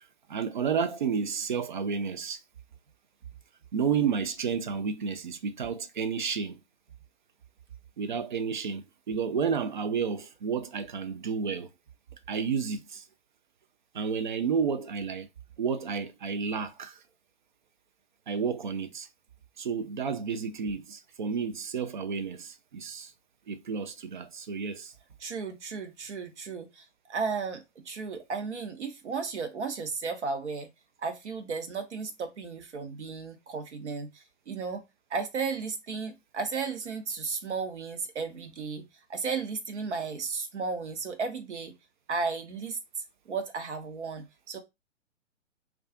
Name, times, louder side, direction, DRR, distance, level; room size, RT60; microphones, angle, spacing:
voice 1, 0.3-2.4 3.7-6.6 8.0-11.7 12.3-13.0 13.9-15.3 15.6-17.0 18.3-19.1 19.6-23.1 23.5-24.9, right 6 dB, 40° right, 0.4 m, -31 dB
voice 2, 25.2-30.7 31.0-34.8 35.1-41.7 42.1-44.6, right 4 dB, 60° right, 0.9 m, -34 dB
2.4 x 2.3 x 3.6 m
figure-of-eight pair, 125°, 38 cm